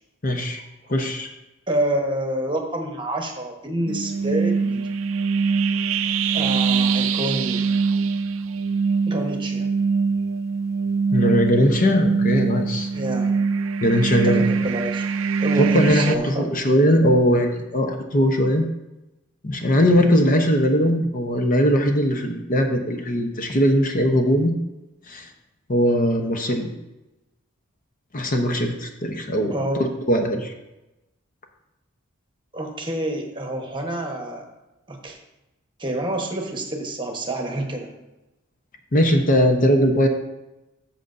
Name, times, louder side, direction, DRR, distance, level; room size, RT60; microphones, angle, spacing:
voice 1, 0.2-0.6 0.9-1.3 11.1-12.9 13.8-14.4 15.6-18.7 19.4-24.5 25.1-25.3 25.7-26.7 28.1-30.5 38.9-40.1, equal, 40° left, 3 dB, 0.8 m, -20 dB
voice 2, 1.7-4.9 6.3-7.6 9.1-9.7 12.9-13.3 14.2-15.1 15.4-16.5 29.5-29.9 32.5-34.4 34.9-35.2 35.8-37.9, right 1 dB, 25° right, 2 dB, 1.1 m, -28 dB
sound 1, 3.9-16.2, right 5 dB, 70° right, 0.4 m, -23 dB
13.0 x 6.8 x 2.6 m, 0.97 s
head